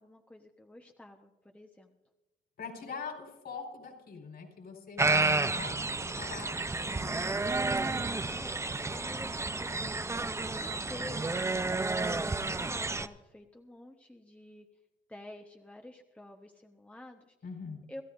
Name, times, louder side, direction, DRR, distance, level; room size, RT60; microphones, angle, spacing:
voice 1, 0.0-2.0 7.9-14.7 15.1-17.4 17.9-18.0, left 1 dB, 5° left, 3 dB, 1.1 m, -49 dB
voice 2, 2.6-7.5 8.9-9.0 17.4-17.8, left 5 dB, 55° left, 2 dB, 4.5 m, -44 dB
sound 1, 5.0-13.1, right 3 dB, 15° right, 0.6 m, -31 dB
27.5 x 13.5 x 2.6 m, 1.1 s
cardioid pair, 90°, 20 cm